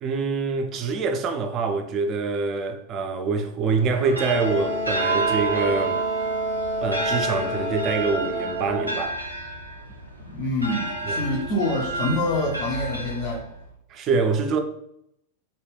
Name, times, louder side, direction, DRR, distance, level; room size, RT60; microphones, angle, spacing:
voice 1, 0.0-6.0 6.8-9.2 11.1-11.2 13.9-14.6, right 4 dB, 30° right, 0.4 m, -25 dB
sound 1, 3.8-13.7, right 2 dB, 90° left, 0.5 m, -31 dB
Wind instrument woodwind instrument, 4.3-9.0, right 1 dB, 65° left, 0.8 m, -28 dB
voice 2, 10.3-13.4, left 1 dB, 40° left, 0.5 m, -26 dB
2.1 x 2.1 x 3.2 m
figure-of-eight pair, 90°, 0 cm